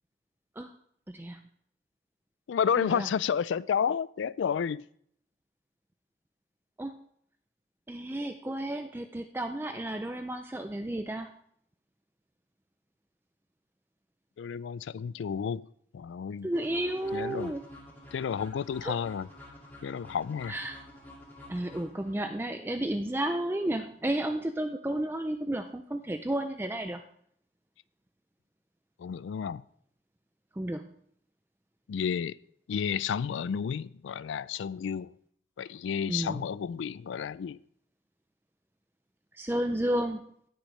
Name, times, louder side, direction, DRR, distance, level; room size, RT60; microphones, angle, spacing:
voice 1, 1.1-1.4 2.8-3.1 6.8-6.9 7.9-11.3 16.4-17.6 18.8-19.0 20.5-20.8 21.5-27.0 30.5-30.9 36.1-36.4 39.3-40.2, right 1 dB, 10° right, 0.4 m, -32 dB
voice 2, 2.5-4.8 14.4-15.7 15.9-16.5 17.1-17.5 18.1-19.3 19.8-20.5 29.0-29.6 31.9-32.4 32.7-35.1 35.6-37.6, left 7 dB, 85° left, 0.3 m, -31 dB
sound 1, 16.5-22.5, left 1 dB, 10° left, 2.2 m, -50 dB
18.0 x 6.3 x 3.2 m
head